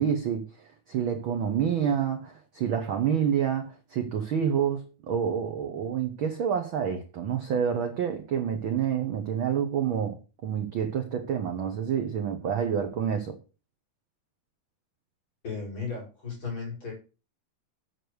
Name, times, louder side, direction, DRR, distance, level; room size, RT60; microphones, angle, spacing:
voice 1, 0.0-13.4, right 8 dB, 70° right, 1.2 m, -28 dB
voice 2, 15.4-16.9, left 5 dB, 35° left, 5.5 m, -35 dB
8.4 x 7.0 x 6.5 m
omnidirectional pair, 3.8 m